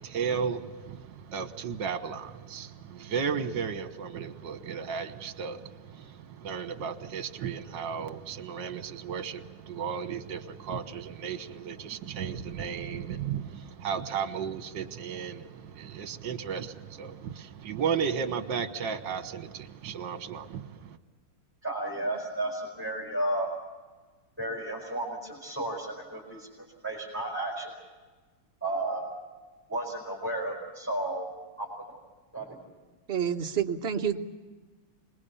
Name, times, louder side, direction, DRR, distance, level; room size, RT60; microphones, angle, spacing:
voice 1, 0.0-21.0, right 6 dB, 60° right, 11 dB, 1.8 m, -34 dB
voice 2, 21.6-23.5 24.4-26.5 26.8-27.7 28.6-29.0 29.7-31.3 31.6-32.0 32.3-32.6, right 1 dB, 5° right, -4 dB, 4.7 m, -33 dB
voice 3, 33.1-34.3, right 8 dB, 45° right, 5 dB, 0.8 m, -29 dB
26.0 x 21.0 x 7.0 m, 1.3 s
omnidirectional pair, 2.4 m